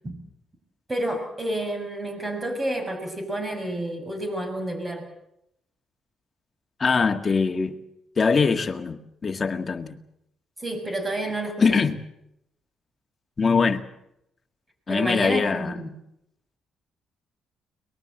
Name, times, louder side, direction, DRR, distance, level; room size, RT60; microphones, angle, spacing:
voice 1, 0.9-5.1 10.6-11.6 14.9-15.9, right 1 dB, 20° right, 7.0 m, -29 dB
voice 2, 6.8-7.8 8.2-10.0 11.6-12.0 13.4-13.9 14.9-15.8, left 5 dB, 35° left, 1.9 m, -22 dB
23.0 x 20.5 x 7.8 m
cardioid pair, 90°, 0 cm